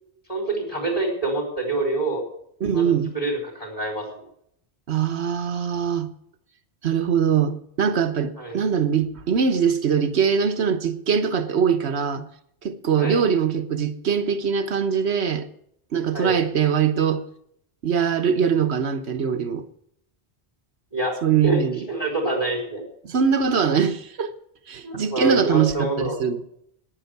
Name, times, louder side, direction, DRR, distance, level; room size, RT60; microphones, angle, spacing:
voice 1, 0.3-2.2 2.7-4.0 8.4-8.6 13.0-13.2 16.1-16.4 20.9-21.2 21.4-21.6 21.9-22.8 24.8-26.2, right 2 dB, 35° left, 4.9 m, -26 dB
voice 2, 2.6-3.1 4.9-6.1 6.8-12.2 12.6-15.5 15.9-17.2 17.8-19.6 21.2-21.8 23.0-24.3 24.7-26.4, right 7 dB, 85° right, 1.4 m, -22 dB
10.0 x 10.0 x 8.2 m
omnidirectional pair, 1.1 m